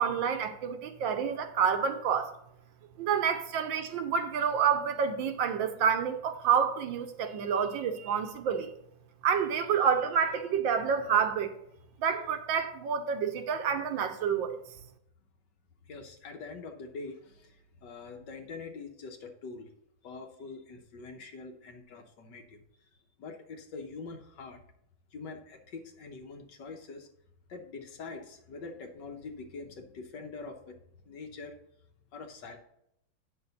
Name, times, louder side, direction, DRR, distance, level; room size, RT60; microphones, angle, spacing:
voice 1, 0.0-2.3 3.0-8.7 9.2-11.5 12.0-14.6, right 7 dB, 70° right, 1.4 m, -28 dB
voice 2, 15.9-19.7 20.0-22.6 23.2-24.6 25.1-27.1 27.5-30.8 31.1-31.6 32.1-32.6, left 4 dB, 65° left, 1.5 m, -44 dB
9.1 x 6.1 x 4.0 m
omnidirectional pair, 2.2 m